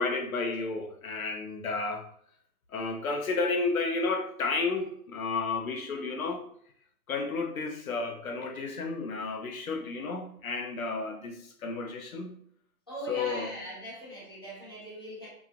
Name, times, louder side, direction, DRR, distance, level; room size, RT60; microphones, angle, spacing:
voice 1, 0.0-2.1 2.7-6.5 7.1-12.4 13.1-13.5, left 3 dB, 60° left, 0.9 m, -32 dB
voice 2, 12.9-15.3, right 1 dB, 15° left, 0.6 m, -40 dB
4.9 x 2.4 x 2.4 m
hypercardioid pair, 165°, 47 cm